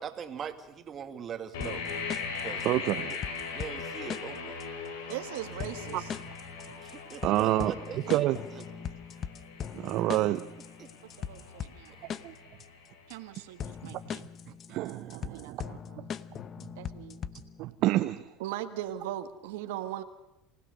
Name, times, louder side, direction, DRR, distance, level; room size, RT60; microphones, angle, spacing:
voice 1, 0.0-1.8 2.4-2.7 2.9-3.2 3.5-4.6 6.8-8.3 8.5-8.6 10.8-10.9 12.0-12.1, right 7 dB, 35° right, 8 dB, 2.1 m, -41 dB
sound 1, 1.5-13.3, left 5 dB, 90° left, 4.2 m, -40 dB
sound 2, 1.6-17.6, left 8 dB, 40° left, 0.8 m, -41 dB
voice 2, 2.6-3.1 5.9-6.0 7.2-7.7 8.0-8.4 9.7-10.5 12.2-12.3 13.8-13.9 14.7-15.6 17.6-18.2, right 15 dB, 60° right, 9 dB, 0.8 m, -28 dB
voice 3, 5.1-6.1 11.2-11.9 13.1-14.2 15.1-16.1 16.8-17.2 18.4-20.0, right 12 dB, 85° right, 9 dB, 1.5 m, -39 dB
27.5 x 16.5 x 6.7 m, 0.91 s
supercardioid pair, 115°, 0 cm